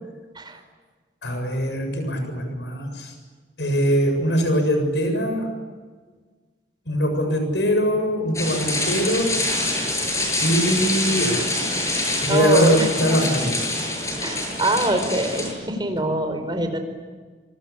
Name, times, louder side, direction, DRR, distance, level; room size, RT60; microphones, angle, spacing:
voice 1, 1.2-3.1 3.6-5.5 6.9-9.3 10.4-11.5 12.2-13.6, equal, 85° left, 5 dB, 7.4 m, -22 dB
sound 1, 8.3-15.5, left 2 dB, 20° left, 8.0 m, -25 dB
voice 2, 12.3-13.3 14.2-16.8, right 1 dB, 25° right, 7 dB, 4.6 m, -24 dB
26.5 x 25.0 x 8.7 m, 1.4 s
head